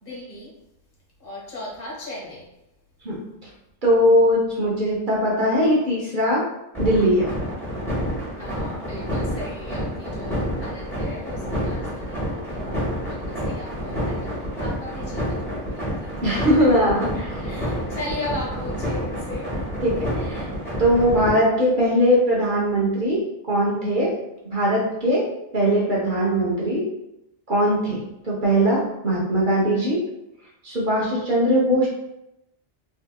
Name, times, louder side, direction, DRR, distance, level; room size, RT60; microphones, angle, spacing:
voice 1, 0.0-0.5 1.2-2.5 8.4-16.9 17.4-19.6, left 2 dB, 55° left, -4 dB, 1.1 m, -37 dB
voice 2, 3.8-6.4 6.8-7.3 16.2-17.7 19.8-20.5 20.8-24.2 24.4-25.3 25.5-26.9 27.5-30.0 30.6-31.9, equal, 45° right, -5 dB, 1.0 m, -20 dB
sound 1, 6.7-21.3, equal, ahead, 1.3 m, -28 dB
4.0 x 2.8 x 2.3 m, 0.86 s
omnidirectional pair, 1.2 m